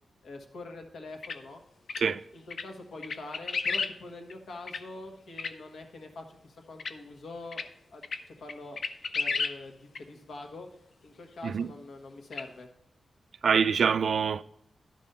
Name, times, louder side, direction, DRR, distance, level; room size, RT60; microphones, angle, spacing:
voice 1, 0.2-1.6 2.3-7.6 7.9-8.8 9.1-10.7 11.0-12.7, left 2 dB, 85° left, 1.4 m, -44 dB
sound 1, 1.2-1.4 1.9-2.0 2.5-2.7 3.0-3.9 4.3-4.4 4.7-4.8 5.4-5.5 6.8-6.9 7.5-7.7 8.0-8.2 8.5-9.6 9.9-10.0 12.3-12.4, left 4 dB, 60° left, 0.5 m, -32 dB
voice 2, 13.4-14.4, right 6 dB, 65° right, 0.3 m, -25 dB
11.0 x 5.3 x 5.5 m
wide cardioid pair, 140°, 0 cm